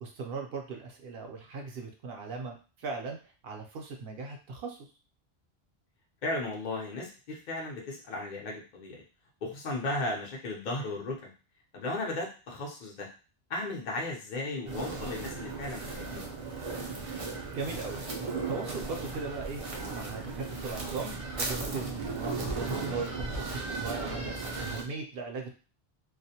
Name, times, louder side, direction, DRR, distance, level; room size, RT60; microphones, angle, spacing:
voice 1, 0.0-3.2 3.4-4.9 17.5-19.6 19.9-25.6, right 4 dB, 70° right, 2 dB, 0.8 m, -39 dB
voice 2, 6.2-9.0 9.4-11.3 11.7-13.1 13.5-16.3, left 2 dB, 50° left, -1 dB, 0.7 m, -35 dB
sound 1, 14.6-24.8, right 3 dB, 45° right, 0.4 m, -36 dB
2.4 x 2.1 x 2.7 m, 0.35 s
omnidirectional pair, 1.1 m